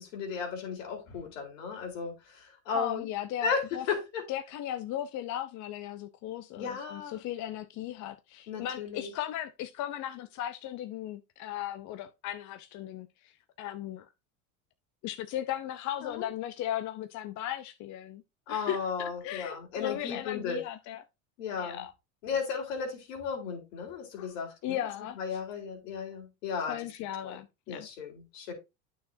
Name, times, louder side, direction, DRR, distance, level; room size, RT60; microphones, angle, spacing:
voice 1, 0.0-3.1 3.4-4.2 6.6-7.2 8.5-9.1 16.0-16.3 18.5-20.6 21.4-21.9 22.2-24.8 25.1-26.8 27.2-27.3 27.7-28.5, left 5 dB, 80° left, 3.6 m, -35 dB
voice 2, 2.7-3.8 4.3-14.1 15.0-18.2 18.5-21.0 21.6-21.9 24.2-24.3 24.6-25.2 26.7-27.9, left 12 dB, 45° left, 0.7 m, -37 dB
9.3 x 6.4 x 2.7 m
supercardioid pair, 105°, 39 cm